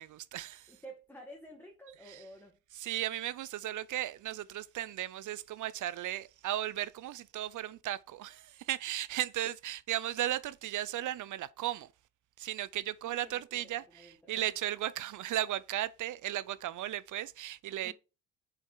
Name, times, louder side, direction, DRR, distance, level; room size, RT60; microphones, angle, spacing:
voice 1, 0.0-0.8 2.0-2.2 2.7-11.9 12.4-17.9, right 13 dB, 70° right, 0.7 m, -36 dB
voice 2, 0.7-2.6 13.2-14.4 17.8-17.9, right 1 dB, 5° left, 2.0 m, -51 dB
7.2 x 5.7 x 4.8 m
cardioid pair, 115°, 32 cm